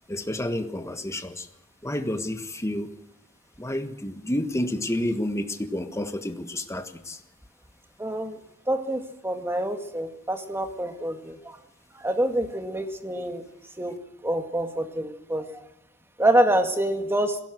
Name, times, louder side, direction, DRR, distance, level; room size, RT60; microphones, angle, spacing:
voice 1, 0.1-1.5 1.8-2.9 3.6-7.2, left 1 dB, 15° left, 8 dB, 1.5 m, -30 dB
voice 2, 8.0-8.4 8.7-11.6 11.9-13.4 13.8-13.9 14.2-15.5 16.2-17.4, right 1 dB, 10° right, 6 dB, 1.9 m, -26 dB
21.0 x 16.5 x 7.8 m, 0.87 s
head